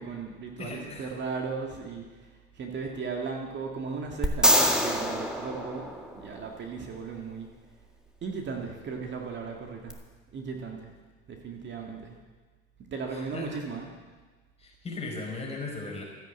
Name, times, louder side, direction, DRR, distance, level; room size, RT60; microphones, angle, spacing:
voice 1, 0.0-5.9 6.2-7.5 8.2-10.0 10.3-10.9 11.3-12.2 12.9-13.9, right 5 dB, 35° right, 2 dB, 2.1 m, -36 dB
voice 2, 0.6-1.1 13.1-13.5 14.6-16.0, left 3 dB, 20° left, -1 dB, 4.8 m, -37 dB
sound 1, 4.2-6.5 9.9-10.0, equal, ahead, 1.9 m, -25 dB
13.5 x 10.5 x 8.4 m, 1.4 s
supercardioid pair, 105°, 30 cm